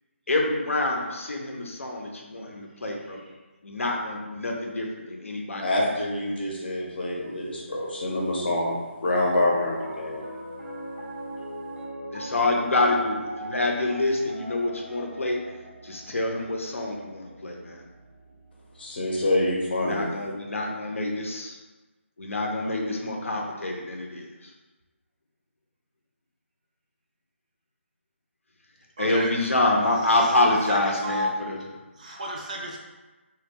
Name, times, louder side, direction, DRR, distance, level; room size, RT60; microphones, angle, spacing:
voice 1, 0.3-3.2 3.6-5.8 12.1-15.4 15.8-17.8 19.7-21.6 22.2-24.5 29.0-31.6, left 2 dB, 85° left, 0 dB, 0.6 m, -27 dB
voice 2, 5.6-8.8 9.0-10.2 18.8-20.0, left 1 dB, 50° left, -3 dB, 0.7 m, -26 dB
Piano, 9.0-19.4, right 1 dB, 80° right, 0.6 m, -40 dB
voice 3, 29.0-29.5 30.0-31.3 31.6-32.8, equal, 35° right, -2 dB, 0.4 m, -34 dB
2.2 x 2.0 x 3.4 m, 1.2 s
figure-of-eight pair, 165°, 7 cm